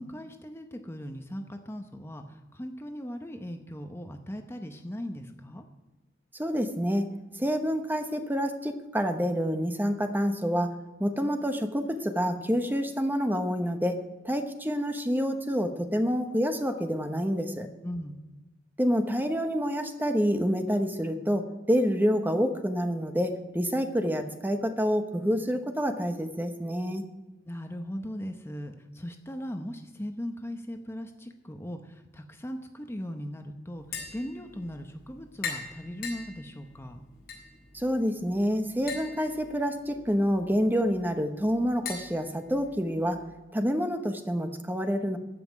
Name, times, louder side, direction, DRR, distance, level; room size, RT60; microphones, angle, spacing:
voice 1, 0.0-5.7 17.8-18.3 27.5-37.0, equal, 15° left, 5 dB, 0.8 m, -38 dB
voice 2, 6.3-7.1 7.4-10.7 11.0-17.7 18.8-27.0 37.7-43.2 43.5-45.2, equal, 10° right, 7 dB, 1.0 m, -28 dB
Tap, 33.8-43.2, left 5 dB, 55° left, 4.6 m, -43 dB
14.5 x 5.9 x 9.3 m, 1.1 s
head